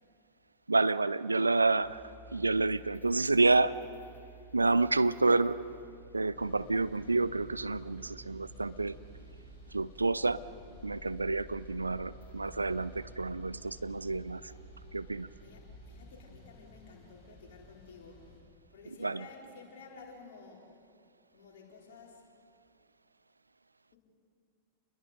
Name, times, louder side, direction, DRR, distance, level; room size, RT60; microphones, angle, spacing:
voice 1, 0.7-2.0 2.3-3.8 4.5-5.7 6.1-9.0 9.7-10.4 10.8-14.5 14.9-15.3 19.0-19.3, right 3 dB, 80° right, 17 dB, 0.5 m, -29 dB
sound 1, 1.8-15.7, right 3 dB, 80° left, 2.1 m, -53 dB
Car travel Accident, 6.3-18.4, left 3 dB, 15° left, 6.8 m, -55 dB
voice 2, 15.4-18.2 18.7-20.7 21.3-22.2, left 4 dB, 55° left, -1 dB, 4.2 m, -52 dB
28.0 x 21.5 x 5.2 m, 2.4 s
figure-of-eight pair, 95°, 0 cm